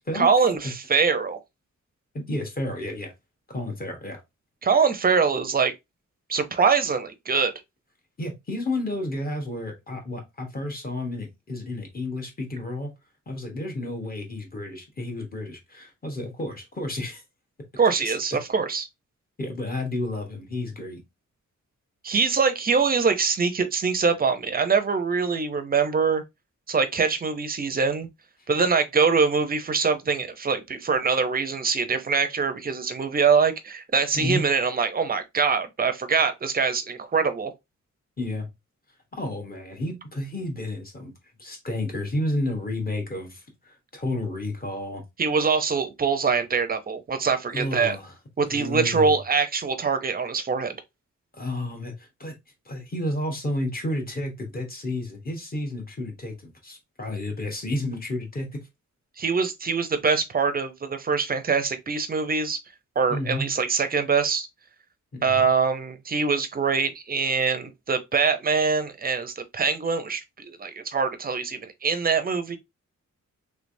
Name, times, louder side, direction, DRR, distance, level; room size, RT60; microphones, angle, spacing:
voice 1, 0.1-1.4 4.6-5.7 6.3-7.5 17.8-18.9 22.0-26.2 26.7-28.1 28.5-37.5 45.2-48.0 48.4-50.7 59.2-62.6 63.0-64.5 65.2-72.6, right 5 dB, 30° right, 0.5 m, -23 dB
voice 2, 2.1-3.1 3.5-4.2 8.2-12.9 13.3-17.2 18.0-18.4 19.4-21.0 34.1-34.4 38.2-38.5 39.1-41.1 41.4-45.0 47.5-48.1 48.5-49.2 51.3-52.3 52.6-58.7 63.1-63.5 65.1-65.5, left 1 dB, 30° left, 1.0 m, -31 dB
3.2 x 3.2 x 2.5 m
wide cardioid pair, 165°, 30 cm